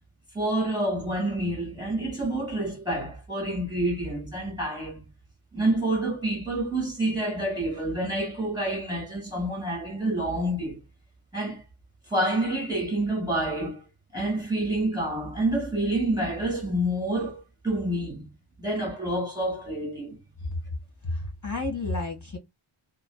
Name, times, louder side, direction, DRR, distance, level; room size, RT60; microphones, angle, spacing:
voice 1, 0.3-5.0 5.5-10.8 11.3-11.6 12.1-13.8 14.1-18.3 18.6-20.2, right 1 dB, 10° right, 1.9 m, -28 dB
voice 2, 21.0-22.4, left 2 dB, 35° left, 1.7 m, -31 dB
3.3 x 2.1 x 2.3 m
wide cardioid pair, 90°, 50 cm